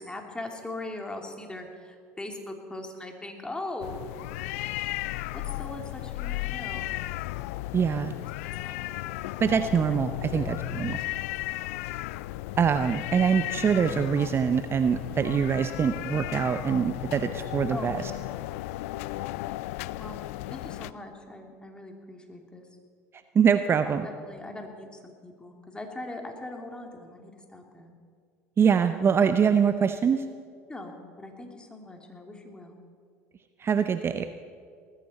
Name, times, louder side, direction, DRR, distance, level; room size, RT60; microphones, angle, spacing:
voice 1, 0.0-4.0 5.3-7.1 8.6-9.8 10.2-10.6 17.7-18.3 20.0-20.2 20.5-22.7 23.8-27.9 30.7-32.8, left 2 dB, 10° left, 3 dB, 2.7 m, -41 dB
sound 1, 3.8-20.9, left 18 dB, 75° left, 0.4 m, -35 dB
voice 2, 7.7-8.1 9.4-11.0 12.6-18.1 23.3-24.1 28.6-30.2 33.6-34.3, right 7 dB, 30° right, 10 dB, 0.7 m, -24 dB
19.5 x 14.5 x 4.3 m, 2.2 s
hypercardioid pair, 75°, 8 cm